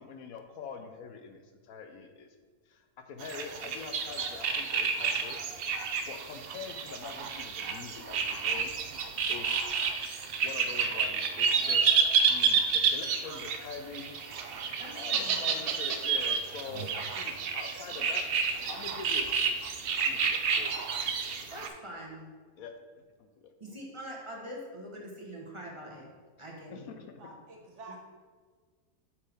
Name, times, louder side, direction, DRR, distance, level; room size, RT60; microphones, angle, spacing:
voice 1, 0.0-2.3 2.7-5.4 6.0-8.7 9.3-9.9 10.4-14.1 14.9-18.2 18.7-19.3 20.0-20.8 21.1-21.3 22.6-22.7 23.2-23.8 26.7-27.2, left 5 dB, 70° left, 6 dB, 1.0 m, -44 dB
sound 1, 3.2-21.7, right 5 dB, 85° right, 0.5 m, -30 dB
voice 2, 14.8-15.6 21.5-22.3 23.6-26.0 26.4-26.9, equal, 20° right, -2 dB, 1.0 m, -43 dB
voice 3, 27.2-28.0, right 2 dB, 55° right, 1 dB, 1.1 m, -48 dB
7.9 x 5.9 x 3.5 m, 1.5 s
omnidirectional pair, 1.6 m